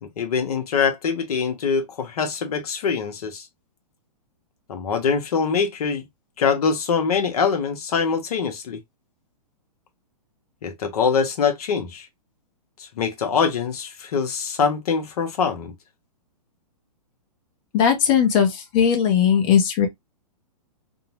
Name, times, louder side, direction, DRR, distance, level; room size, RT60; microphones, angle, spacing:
voice 1, 0.0-3.4 4.7-6.1 6.4-8.8 10.6-12.1 12.8-15.7, left 6 dB, 65° left, 0.8 m, -23 dB
voice 2, 17.7-19.9, left 8 dB, 35° left, 0.7 m, -18 dB
2.6 x 2.0 x 2.8 m
hypercardioid pair, 130°, 20 cm